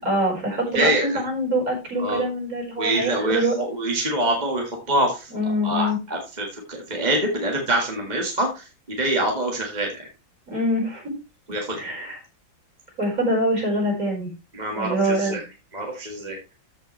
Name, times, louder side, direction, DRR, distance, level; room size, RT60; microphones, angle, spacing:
voice 1, 0.0-3.5 5.3-6.0 10.5-11.0 11.7-12.2 13.0-14.3 14.7-15.4, equal, 45° right, -1 dB, 5.4 m, -24 dB
voice 2, 0.7-1.2 2.0-2.2 2.8-5.3 5.6-10.1 11.5-11.8 14.5-15.4 15.7-16.4, right 1 dB, 25° right, 1 dB, 1.8 m, -25 dB
14.5 x 5.7 x 3.2 m, 0.28 s
omnidirectional pair, 2.1 m